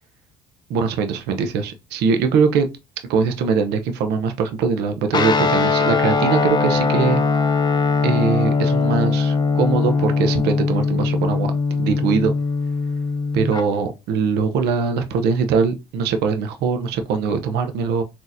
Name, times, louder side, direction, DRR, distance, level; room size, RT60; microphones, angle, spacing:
voice 1, 0.7-2.7 3.1-7.2 8.0-11.5 11.8-12.3 13.3-18.0, right 5 dB, 80° right, 0.6 m, -21 dB
Guitar, 5.1-13.6, left 4 dB, 25° left, 0.5 m, -20 dB
4.0 x 2.8 x 2.5 m
cardioid pair, 110°, 17 cm